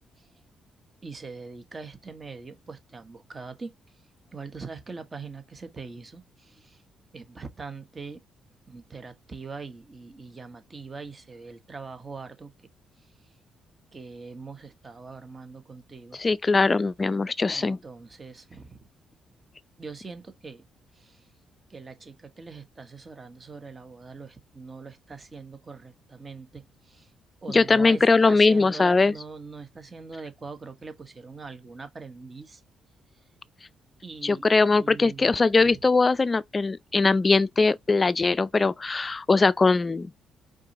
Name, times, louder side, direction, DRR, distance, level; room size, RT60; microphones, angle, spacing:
voice 1, 1.0-3.7 4.3-6.8 7.1-8.2 8.7-12.5 13.0-13.1 13.9-16.2 17.5-18.9 19.8-20.6 20.9-21.3 21.7-27.1 27.4-32.6 34.0-34.4 34.7-35.4 35.6-35.8, right 4 dB, 30° right, 1.2 m, -42 dB
voice 2, 16.2-17.8 27.5-29.1 34.2-40.1, left 3 dB, 25° left, 0.4 m, -21 dB
4.8 x 3.8 x 2.9 m
cardioid pair, 90°, 0 cm